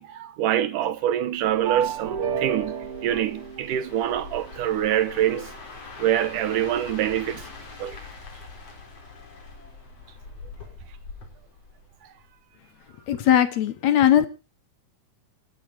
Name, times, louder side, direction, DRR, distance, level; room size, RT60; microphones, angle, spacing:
voice 1, 0.0-5.5 6.0-7.4 7.8-8.0, right 11 dB, 75° right, 1.9 m, -25 dB
sound 1, 1.3-12.4 12.8-13.1, left 4 dB, 35° left, 4.4 m, -44 dB
sound 2, 1.6-4.6, right 8 dB, 50° right, 1.8 m, -32 dB
voice 2, 13.1-14.3, left 10 dB, 70° left, 1.7 m, -19 dB
28.0 x 11.5 x 2.8 m
omnidirectional pair, 4.8 m